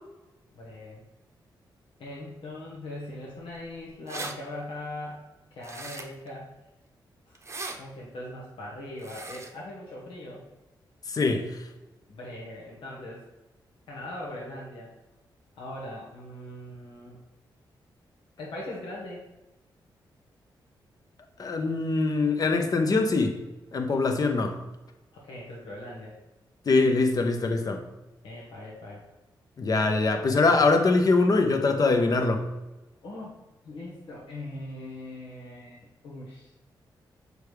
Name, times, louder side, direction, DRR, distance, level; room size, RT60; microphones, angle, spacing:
voice 1, 0.5-1.0 2.0-5.2 5.5-6.5 7.3-7.4 7.8-10.4 12.1-13.2 13.9-14.9 15.6-17.2 18.4-19.2 25.1-26.2 28.2-29.0 33.0-33.4 33.6-36.5, left 1 dB, 85° left, -4 dB, 1.2 m, -40 dB
sound 1, 3.9-4.3 5.6-6.3 7.3-7.8 9.0-9.5, right 3 dB, 35° right, 0.8 m, -38 dB
voice 2, 11.1-11.6 21.4-23.4 23.7-24.6 26.7-27.8 29.6-32.4, left 3 dB, 45° left, 5 dB, 0.9 m, -23 dB
6.7 x 4.7 x 3.3 m, 1.1 s
cardioid pair, 80°, 8 cm